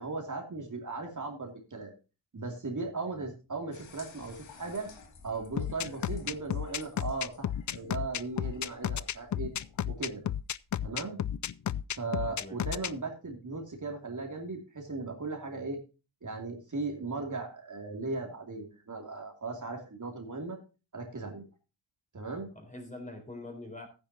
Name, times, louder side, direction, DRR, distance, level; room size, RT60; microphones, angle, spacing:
voice 1, 0.0-1.9 2.3-4.9 5.2-9.5 9.9-10.2 10.8-11.2 11.9-15.8 16.2-20.6 20.9-21.4 22.1-22.5, right 3 dB, 40° right, 2 dB, 2.6 m, -37 dB
sound 1, 3.7-10.9, left 4 dB, 70° left, 2.4 m, -55 dB
sound 2, 5.6-12.9, left 10 dB, 40° left, 0.4 m, -32 dB
voice 2, 12.2-12.6 22.6-23.9, left 2 dB, 15° left, 4 dB, 4.1 m, -44 dB
14.5 x 9.6 x 2.8 m, 0.31 s
wide cardioid pair, 115°, 47 cm